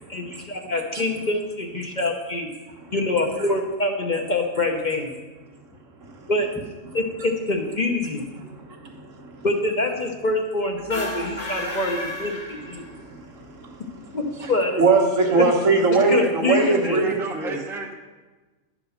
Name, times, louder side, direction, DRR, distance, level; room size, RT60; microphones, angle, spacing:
voice 1, 0.1-2.5 2.9-5.1 6.3-6.5 6.9-8.2 9.4-12.4 12.7-12.8 14.1-14.8 15.4-15.5 16.1-17.0, left 2 dB, 40° left, 2 dB, 1.0 m, -25 dB
voice 2, 8.3-9.5 11.2-11.3 12.7-13.3 13.6-14.5 14.8-17.6, right 3 dB, 75° right, 0 dB, 1.7 m, -22 dB
sound 1, 10.8-13.1, left 1 dB, 85° left, 2.4 m, -32 dB
voice 3, 15.3-17.9, right 2 dB, ahead, 2 dB, 0.6 m, -35 dB
11.0 x 4.9 x 6.6 m, 1.2 s
omnidirectional pair, 1.3 m